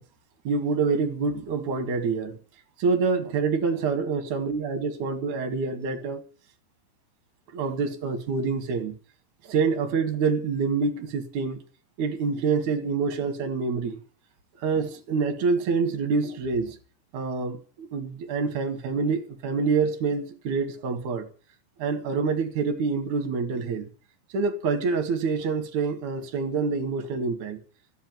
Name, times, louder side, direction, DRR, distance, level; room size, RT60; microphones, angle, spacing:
voice 1, 0.4-2.4 2.8-6.2 7.5-9.0 9.4-11.6 12.0-14.0 14.6-16.8 17.1-21.3 21.8-23.9 24.3-27.6, right 4 dB, 50° right, 2.9 m, -26 dB
14.5 x 8.3 x 9.3 m
omnidirectional pair, 5.1 m